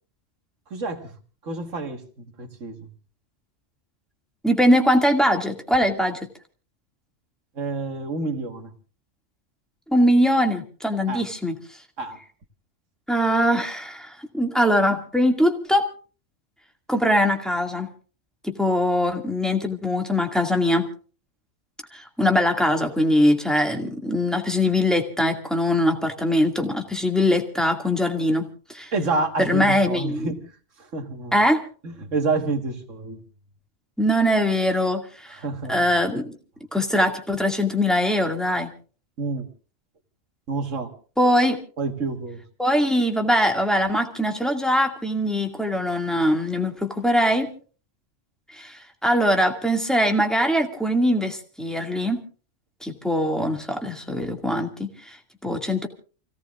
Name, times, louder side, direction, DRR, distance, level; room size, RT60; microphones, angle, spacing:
voice 1, 0.7-1.1 1.4-2.9 7.6-8.7 11.1-11.3 12.0-12.2 28.9-30.5 30.8-31.3 31.8-33.2 35.3-35.8 39.2-39.5 40.5-40.9 41.8-42.4, right 3 dB, 80° right, 5 dB, 2.0 m, -28 dB
voice 2, 4.4-6.2 9.9-11.6 13.1-15.9 16.9-17.9 18.4-20.9 21.9-28.9 29.4-30.3 31.3-31.6 34.0-35.4 35.7-36.3 36.7-38.7 41.2-41.6 42.6-47.5 48.5-52.2 52.8-55.9, equal, ahead, 3 dB, 2.1 m, -22 dB
29.5 x 17.0 x 2.5 m, 0.38 s
omnidirectional pair, 1.3 m